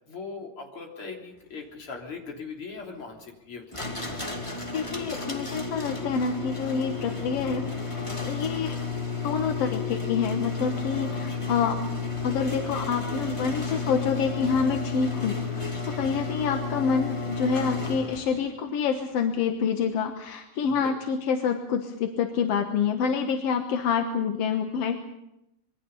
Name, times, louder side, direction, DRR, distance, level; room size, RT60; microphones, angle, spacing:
voice 1, 0.0-3.8 10.9-11.5 20.6-20.9, left 4 dB, 40° left, 1 dB, 4.1 m, -40 dB
sound 1, 3.7-18.4, left 4 dB, 10° left, 2.0 m, -32 dB
voice 2, 4.7-8.8 9.2-11.8 12.2-25.0, left 6 dB, 60° left, 5 dB, 1.9 m, -27 dB
26.0 x 22.5 x 5.5 m, 0.86 s
omnidirectional pair, 3.7 m